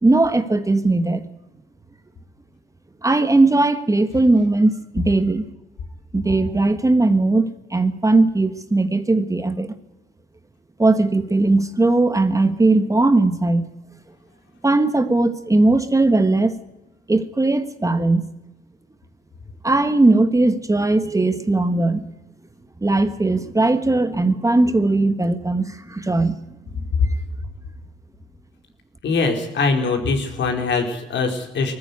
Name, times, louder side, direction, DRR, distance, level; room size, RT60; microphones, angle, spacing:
voice 1, 0.0-1.2 3.0-5.5 6.1-9.8 10.8-13.7 14.6-16.6 17.1-18.3 19.6-22.0 22.8-26.4, right 2 dB, 15° right, 10 dB, 1.3 m, -18 dB
voice 2, 29.0-31.7, left 4 dB, 65° left, 4 dB, 4.4 m, -22 dB
20.0 x 14.5 x 9.7 m, 1.0 s
cardioid pair, 90°, 20 cm